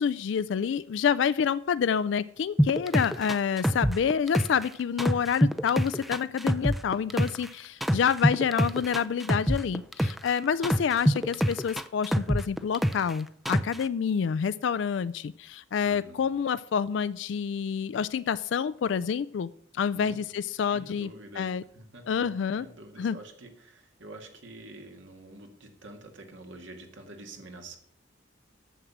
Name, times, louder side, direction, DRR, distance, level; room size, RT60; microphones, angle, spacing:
voice 1, 0.0-21.1 21.4-21.6 22.1-22.7 23.0-23.2, left 7 dB, 75° left, 14 dB, 0.3 m, -28 dB
sound 1, 2.6-4.7 5.0-7.5 7.8-10.3 10.6-13.1 13.5-13.8, equal, ahead, 0.4 m, -25 dB
voice 2, 15.8-16.3 19.9-20.2 20.7-21.5 21.7-27.8, right 2 dB, 80° right, 4 dB, 1.9 m, -47 dB
11.0 x 7.2 x 6.1 m, 0.67 s
head